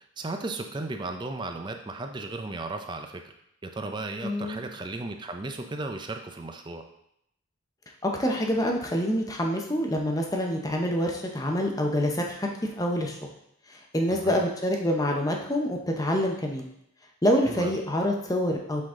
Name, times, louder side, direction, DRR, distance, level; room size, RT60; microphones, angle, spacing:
voice 1, 0.0-3.3 3.6-6.8 14.1-14.4 17.4-17.7, right 2 dB, 20° right, 5 dB, 0.5 m, -35 dB
voice 2, 4.2-4.6 8.0-13.2 13.7-16.7 17.2-18.8, equal, 15° left, 1 dB, 0.7 m, -26 dB
7.6 x 3.9 x 3.6 m, 0.77 s
head